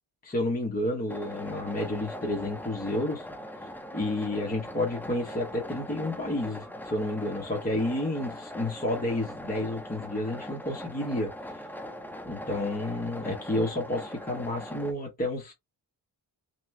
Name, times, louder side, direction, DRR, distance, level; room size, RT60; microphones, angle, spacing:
voice 1, 0.2-3.3 3.9-11.3 12.3-15.5, left 1 dB, 20° left, 1.0 m, -30 dB
sound 1, 1.1-14.9, equal, 5° left, 0.6 m, -41 dB
3.6 x 2.9 x 3.2 m
wide cardioid pair, 165°, 43 cm